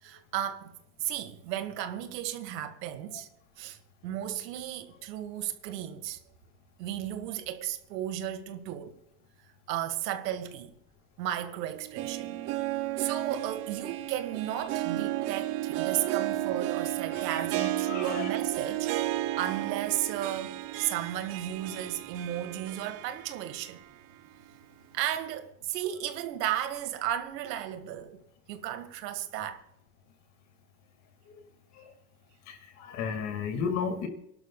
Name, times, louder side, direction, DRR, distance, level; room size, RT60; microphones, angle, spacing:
voice 1, 0.0-3.3 3.6-6.2 6.8-9.0 9.7-10.7 11.2-12.4 13.0-18.9 19.4-23.8 24.9-28.2 28.5-29.6, right 11 dB, 90° right, 1.9 m, -34 dB
Harp, 11.7-23.8 24.2-24.3 25.1-25.2, right 15 dB, 35° right, 0.5 m, -33 dB
voice 2, 17.6-18.3 31.7-31.8 32.5-34.1, left 6 dB, 35° left, 2.2 m, -34 dB
29.0 x 12.0 x 2.4 m
supercardioid pair, 170°, 48 cm